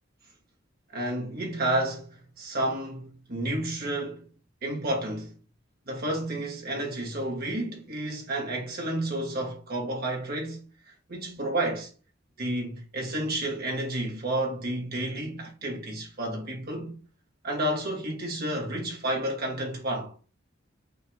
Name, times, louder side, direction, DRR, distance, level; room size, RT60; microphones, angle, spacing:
voice 1, 0.9-4.3 4.6-5.3 5.9-10.7 11.1-11.9 12.4-17.0 17.4-20.1, right 1 dB, 50° right, 1.9 m, -31 dB
5.4 x 3.6 x 2.3 m
head